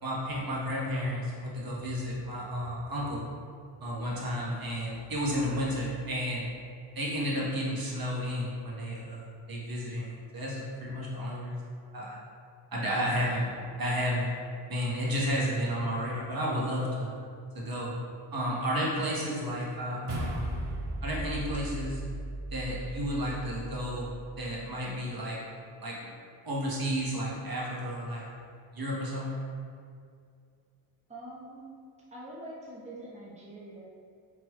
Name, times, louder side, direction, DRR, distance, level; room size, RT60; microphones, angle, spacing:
voice 1, 0.0-3.2 3.8-6.5 6.9-11.6 11.9-12.2 12.7-14.3 14.6-17.1 17.5-17.9 18.3-20.5 21.0-22.0 22.5-24.1 24.3-25.4 25.8-26.0 26.4-28.3 28.7-29.4, equal, 45° right, -5 dB, 1.2 m, -32 dB
sound 1, 20.1-24.6, right 1 dB, 90° right, 0.8 m, -37 dB
voice 2, 31.1-31.7 32.1-33.8, right 1 dB, 15° right, -6 dB, 0.8 m, -44 dB
4.4 x 4.2 x 2.3 m, 2.3 s
cardioid pair, 65°, 49 cm